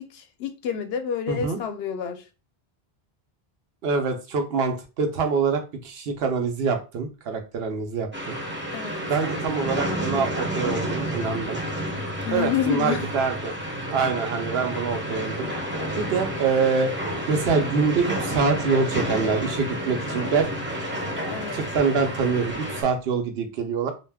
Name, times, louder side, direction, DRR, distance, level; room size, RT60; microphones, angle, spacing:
voice 1, 0.0-2.2 8.7-9.0 12.2-13.0 21.3-21.6, left 8 dB, 80° left, 0.8 m, -28 dB
voice 2, 1.3-1.6 3.8-8.4 9.1-11.6 12.3-13.6 13.9-15.5 16.0-16.9 17.3-20.5 21.5-23.9, right 5 dB, 80° right, 0.9 m, -25 dB
sound 1, 8.1-22.8, equal, 15° right, 0.5 m, -30 dB
2.5 x 2.2 x 3.3 m
omnidirectional pair, 1.0 m